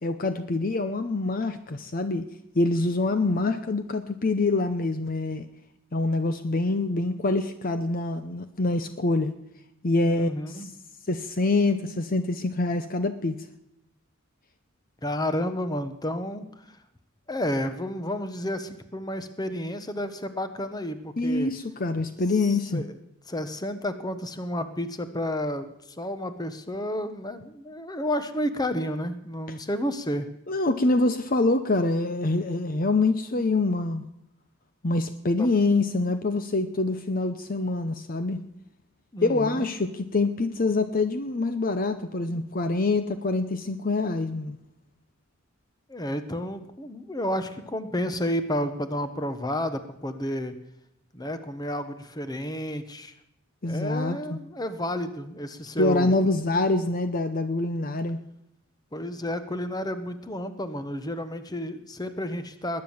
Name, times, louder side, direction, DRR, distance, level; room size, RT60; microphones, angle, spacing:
voice 1, 0.0-2.2 2.5-5.5 5.9-9.3 9.8-10.7 11.1-13.4 21.2-22.8 30.5-34.0 34.8-38.4 39.2-44.6 53.6-54.4 55.8-58.2, left 2 dB, 45° left, 10 dB, 0.7 m, -25 dB
voice 2, 10.0-10.8 15.0-16.8 17.3-21.5 22.4-22.9 23.3-30.3 35.4-35.5 39.1-39.7 45.9-50.5 51.1-53.1 53.6-56.1 58.9-62.8, equal, 20° left, 10 dB, 1.1 m, -31 dB
20.5 x 9.7 x 7.3 m, 0.78 s
head